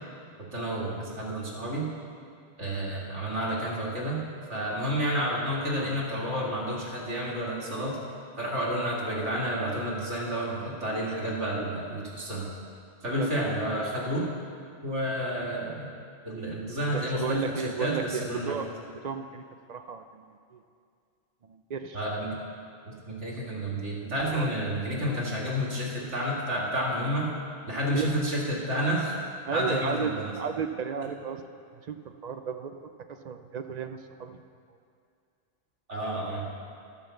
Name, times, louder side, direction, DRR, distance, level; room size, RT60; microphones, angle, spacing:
voice 1, 0.5-1.9 2.6-4.2 4.5-8.0 8.4-12.5 13.0-14.3 14.8-15.9 16.2-18.6 21.9-22.4 22.9-27.3 27.7-29.1 29.5-30.3 35.9-36.5, equal, 85° right, -4 dB, 2.4 m, -30 dB
voice 2, 13.1-13.5 16.9-18.7 19.0-19.4 19.7-20.3 20.5-20.6 21.5-22.0 24.3-24.5 27.9-28.2 29.5-31.4 31.8-32.0 32.2-32.7 33.1-34.4, right 6 dB, 50° right, 8 dB, 0.5 m, -33 dB
13.0 x 7.1 x 6.9 m, 2.4 s
omnidirectional pair, 1.2 m